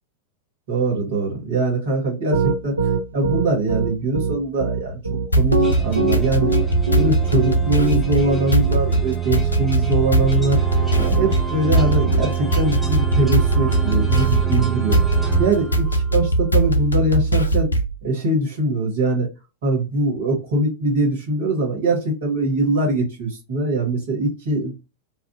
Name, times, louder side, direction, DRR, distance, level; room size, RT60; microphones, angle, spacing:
voice 1, 0.7-5.0 5.3-6.5 6.9-10.6 11.0-15.0 15.4-17.7 18.0-19.3 19.6-24.7, right 2 dB, 55° right, 0 dB, 1.2 m, -22 dB
Piano, 2.3-8.8, right 3 dB, 80° right, 0.3 m, -22 dB
sound 1, 5.3-18.0, right 2 dB, 85° left, 0.4 m, -20 dB
sound 2, 5.6-16.3, right 8 dB, ahead, 0.6 m, -26 dB
2.5 x 2.1 x 2.3 m, 0.28 s
figure-of-eight pair, 90°, 0 cm